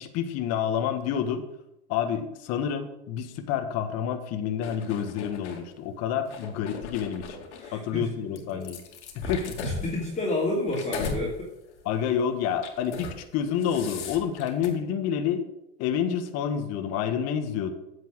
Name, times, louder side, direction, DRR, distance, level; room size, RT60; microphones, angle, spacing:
voice 1, 0.0-1.5 1.9-7.2 7.7-8.8 9.1-9.6 11.8-15.5 15.8-17.7, left 8 dB, 45° left, 7 dB, 1.5 m, -28 dB
sound 1, 4.6-5.6 6.2-7.7 8.4-11.2 11.7-11.9 12.5-13.2 13.5-14.7, left 4 dB, 80° left, 2.5 m, -37 dB
voice 2, 7.6-8.1 8.5-8.6 9.2-11.5, left 2 dB, 20° left, -3 dB, 2.9 m, -30 dB
9.4 x 7.5 x 7.4 m, 0.87 s
hypercardioid pair, 115°, 35 cm